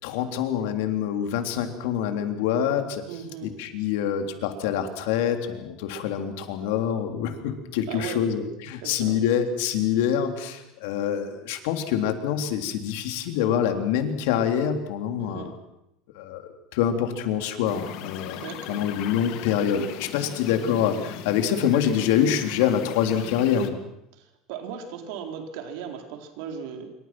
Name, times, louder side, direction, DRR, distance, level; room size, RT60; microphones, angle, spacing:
voice 1, 0.0-3.0 3.4-15.5 16.1-23.8, left 9 dB, 90° left, 6 dB, 3.5 m, -26 dB
voice 2, 3.1-3.6 7.9-8.3 8.8-9.2 15.2-15.6 18.4-18.9 24.1-26.9, right 7 dB, 70° right, 4 dB, 4.3 m, -37 dB
sound 1, 17.6-23.7, left 12 dB, 60° left, 2.0 m, -39 dB
27.5 x 25.0 x 6.2 m, 0.83 s
cardioid pair, 175°, 0 cm